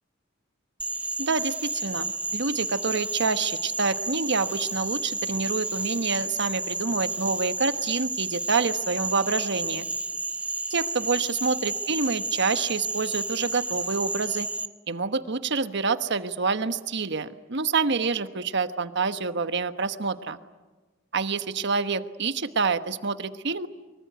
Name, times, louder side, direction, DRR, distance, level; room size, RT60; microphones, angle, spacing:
Frog, 0.8-14.7, right 2 dB, 5° right, 0.9 m, -31 dB
voice 1, 1.2-9.9 10.7-14.5 14.9-20.4 21.1-23.7, right 4 dB, 60° right, 11 dB, 1.2 m, -27 dB
25.0 x 24.0 x 9.4 m, 1.3 s
head